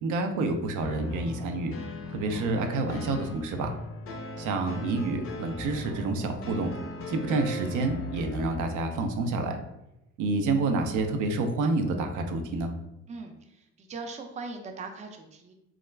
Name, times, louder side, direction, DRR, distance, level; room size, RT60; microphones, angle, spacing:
voice 1, 0.0-1.7 2.1-3.7 4.4-6.7 7.1-9.6 10.2-12.7, right 3 dB, 80° right, 5 dB, 0.5 m, -28 dB
sound 1, 0.8-8.7, left 2 dB, 50° left, 0.5 m, -38 dB
voice 2, 13.1-15.5, right 3 dB, 25° right, 4 dB, 0.4 m, -40 dB
2.3 x 2.1 x 3.1 m, 0.88 s
cardioid pair, 90°, 30 cm